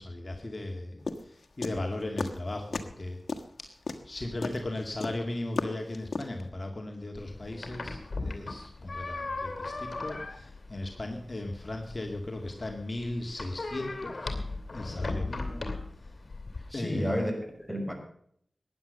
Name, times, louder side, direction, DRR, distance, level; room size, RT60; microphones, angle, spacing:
voice 1, 0.0-3.2 4.0-14.3 14.7-15.7 16.7-17.3, left 1 dB, 45° left, 2 dB, 2.2 m, -37 dB
sound 1, 1.1-2.4 2.7-3.0 3.3-6.4, left 3 dB, 75° left, 1.4 m, -33 dB
sound 2, 7.2-16.7, left 3 dB, 60° left, 2.9 m, -38 dB
voice 2, 16.7-17.9, equal, ahead, 3 dB, 5.6 m, -31 dB
15.0 x 10.5 x 6.6 m, 0.64 s
wide cardioid pair, 55°, 0 cm